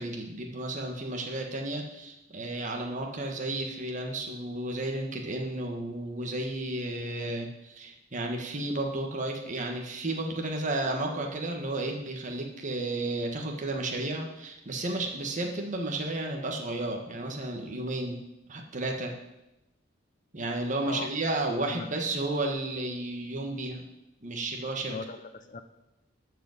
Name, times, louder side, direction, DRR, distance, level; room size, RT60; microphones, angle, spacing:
voice 1, 0.0-18.2 18.5-19.1 20.3-23.8 24.2-25.0, right 2 dB, 40° right, 1 dB, 1.5 m, -32 dB
voice 2, 21.5-21.9 24.9-25.6, left 4 dB, 45° left, 9 dB, 0.7 m, -39 dB
12.5 x 5.1 x 8.1 m, 0.94 s
head